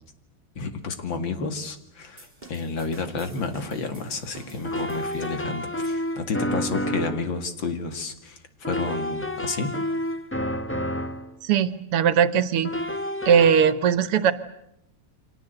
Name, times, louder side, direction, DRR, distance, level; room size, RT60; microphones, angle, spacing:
voice 1, 0.6-8.4 8.7-9.7, left 4 dB, 60° left, 8 dB, 2.8 m, -30 dB
sound 1, 2.2-5.6, right 3 dB, 20° right, 4.6 m, -48 dB
sound 2, 3.2-3.3 4.6-7.3 8.6-11.3 12.6-13.7, left 1 dB, 10° left, 0.8 m, -29 dB
voice 2, 11.4-12.7 13.3-14.3, right 8 dB, 90° right, 14 dB, 2.2 m, -19 dB
29.0 x 25.0 x 7.9 m, 0.76 s
omnidirectional pair, 2.4 m